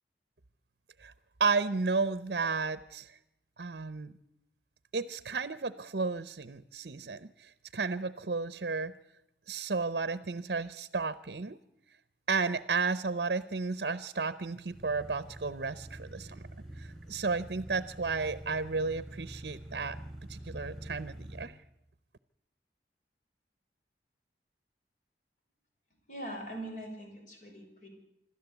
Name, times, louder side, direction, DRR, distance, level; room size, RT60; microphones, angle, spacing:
voice 1, 1.4-3.2 3.6-4.1 4.9-8.9 9.5-11.6 12.3-16.4 16.8-20.0 20.3-21.6, right 4 dB, 60° right, 14 dB, 0.7 m, -33 dB
sound 1, 14.7-21.5, right 1 dB, ahead, 4.8 m, -46 dB
voice 2, 26.1-27.9, right 1 dB, 45° left, 2 dB, 6.1 m, -42 dB
26.5 x 13.0 x 8.1 m, 0.86 s
head